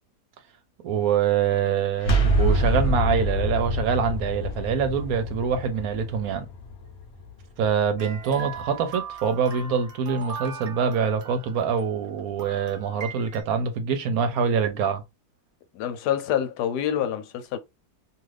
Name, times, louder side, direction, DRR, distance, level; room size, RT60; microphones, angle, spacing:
voice 1, 0.8-6.5 7.6-15.0, right 6 dB, 70° right, 1.0 m, -25 dB
sound 1, 2.0-7.7, right 1 dB, 55° left, 0.9 m, -26 dB
sound 2, 8.0-13.4, right 6 dB, 85° right, 0.3 m, -39 dB
voice 2, 15.7-17.6, left 10 dB, 85° left, 1.2 m, -26 dB
2.7 x 2.5 x 3.2 m
omnidirectional pair, 1.7 m